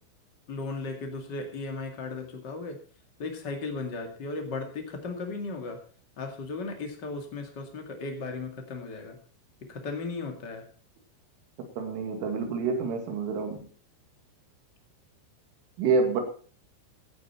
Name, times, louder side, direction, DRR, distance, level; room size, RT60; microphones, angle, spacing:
voice 1, 0.5-2.8 3.2-5.8 6.2-9.2 9.7-10.6, left 3 dB, 75° left, 0.9 m, -36 dB
voice 2, 11.8-13.6 15.8-16.2, right 4 dB, 80° right, 4.5 m, -27 dB
15.5 x 11.0 x 4.4 m
omnidirectional pair, 5.8 m